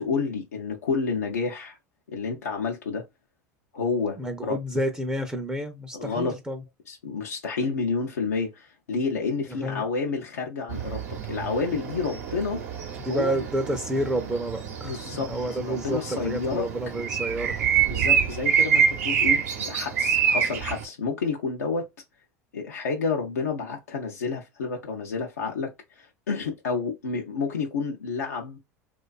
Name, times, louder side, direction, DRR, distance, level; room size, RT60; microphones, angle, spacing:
voice 1, 0.0-1.8 2.1-3.0 3.7-4.6 5.9-6.4 6.9-12.6 13.1-13.4 14.8-15.3 15.6-16.7 17.9-21.9 22.5-28.6, left 4 dB, 85° left, 0.5 m, -29 dB
voice 2, 4.2-6.6 9.6-9.8 13.0-17.7, right 1 dB, 10° right, 0.4 m, -30 dB
sound 1, 10.7-20.8, right 7 dB, 75° right, 0.7 m, -27 dB
2.4 x 2.2 x 2.3 m
hypercardioid pair, 80°, 8 cm